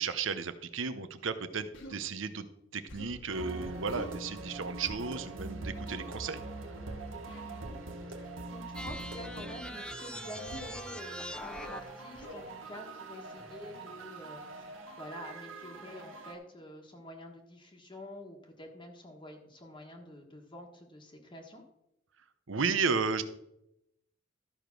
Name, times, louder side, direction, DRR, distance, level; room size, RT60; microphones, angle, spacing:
voice 1, 0.0-2.5 2.7-6.4 22.5-23.2, right 5 dB, 70° right, 11 dB, 0.8 m, -33 dB
Human voice, 1.7-2.0 2.9-3.3 3.9-4.2 5.8-6.1 7.3-7.6 8.8-9.1 10.5-10.8 11.5-11.8 12.2-12.5, left 1 dB, 65° left, 1.6 m, -46 dB
sound 1, 3.3-16.3, right 2 dB, 85° right, 1.8 m, -43 dB
voice 2, 7.5-7.8 8.1-21.6, left 1 dB, 25° left, 2 dB, 1.4 m, -48 dB
sound 2, 8.8-12.1, left 1 dB, 5° left, 0.5 m, -43 dB
13.0 x 5.1 x 6.0 m, 0.82 s
head